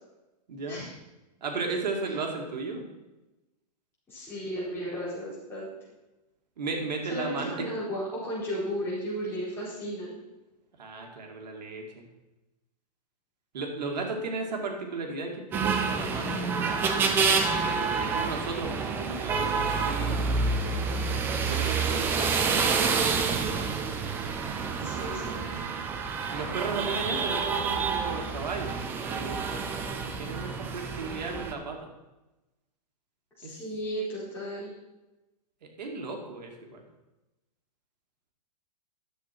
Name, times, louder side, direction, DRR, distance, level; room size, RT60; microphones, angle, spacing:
voice 1, 0.5-0.9 1.4-2.8 6.6-7.7 10.8-11.8 13.5-17.2 17.5-20.6 21.2-23.6 24.9-25.4 26.3-29.5 29.7-31.9 33.4-33.5 35.6-36.8, right 3 dB, 85° right, 2 dB, 2.3 m, -35 dB
voice 2, 4.1-5.7 7.1-10.1 24.7-25.7 33.4-34.7, equal, 10° left, -9 dB, 4.2 m, -34 dB
sound 1, 15.5-31.5, right 5 dB, 10° right, 0.4 m, -28 dB
11.5 x 7.3 x 4.5 m, 1.0 s
hypercardioid pair, 165°, 21 cm